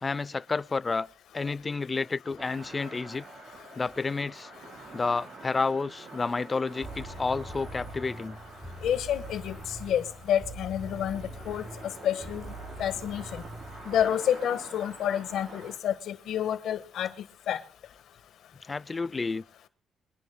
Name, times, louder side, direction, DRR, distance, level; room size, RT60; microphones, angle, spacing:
voice 1, 0.0-1.1 1.3-3.2 3.8-4.5 4.9-8.4 18.7-19.4, left 4 dB, 30° left, 0.5 m, -30 dB
sound 1, 2.4-15.8, right 3 dB, 50° right, 5.2 m, -47 dB
sound 2, 6.8-14.1, right 1 dB, 5° right, 4.5 m, -43 dB
voice 2, 8.8-11.7 12.0-12.5 12.8-13.4 13.9-17.1 17.5-17.6, left 10 dB, 75° left, 1.5 m, -29 dB
24.5 x 10.5 x 2.3 m
cardioid pair, 90°, 0 cm